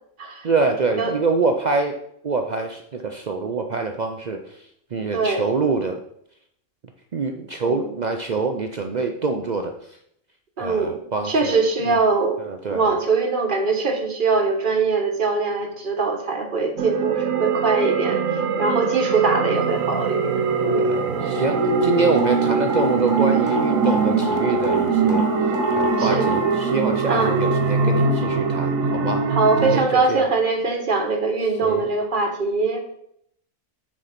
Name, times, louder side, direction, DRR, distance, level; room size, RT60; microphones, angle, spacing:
voice 1, 0.4-1.9 2.2-4.4 4.9-6.0 7.1-9.7 10.6-11.5 11.9-12.0 12.4-12.9 20.8-25.2 25.7-29.2 29.6-30.3 31.6-31.9, right 4 dB, 60° right, 4 dB, 0.4 m, -25 dB
voice 2, 5.1-5.5 7.6-8.0 10.6-12.4 12.7-20.2 20.6-20.9 26.0-26.3 27.1-27.4 29.3-32.8, right 4 dB, 40° right, 4 dB, 1.2 m, -22 dB
sound 1, 16.8-29.8, right 4 dB, 75° right, 1.2 m, -22 dB
sound 2, 22.2-22.3 22.7-22.8 23.1-23.6 23.8-24.0 24.2-24.3 24.6-24.7 25.1-25.2 25.5-25.8 26.2-26.3, left 3 dB, 10° left, 1.9 m, -29 dB
6.4 x 4.4 x 5.7 m, 0.72 s
omnidirectional pair, 1.4 m